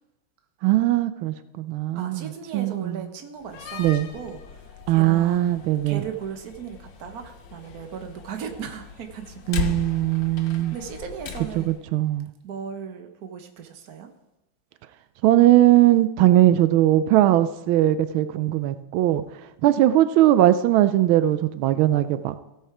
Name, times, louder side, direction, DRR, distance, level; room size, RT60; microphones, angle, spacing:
voice 1, 0.6-3.1 3.8-4.1 4.9-6.0 9.5-10.8 11.6-12.3 15.2-22.3, right 14 dB, 90° right, 13 dB, 1.4 m, -20 dB
voice 2, 1.9-9.6 10.4-11.7 12.4-14.1, right 7 dB, 55° right, 6 dB, 1.4 m, -37 dB
Slam, 3.4-11.8, left 6 dB, 70° left, 1.6 m, -38 dB
16.0 x 6.6 x 4.9 m, 0.98 s
omnidirectional pair, 2.2 m